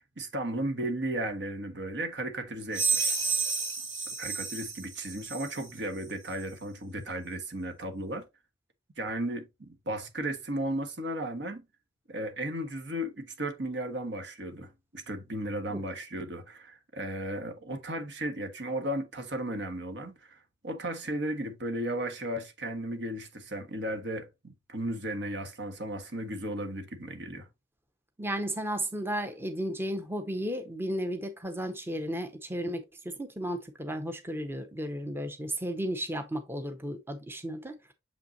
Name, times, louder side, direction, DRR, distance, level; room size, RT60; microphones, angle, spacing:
voice 1, 0.0-3.1 4.2-8.3 9.0-11.6 12.1-27.5, right 1 dB, 70° right, 1.4 m, -35 dB
sound 1, 2.7-5.7, right 5 dB, 40° right, 2.5 m, -31 dB
voice 2, 28.2-37.8, equal, 15° right, 0.7 m, -34 dB
7.1 x 5.6 x 2.6 m
head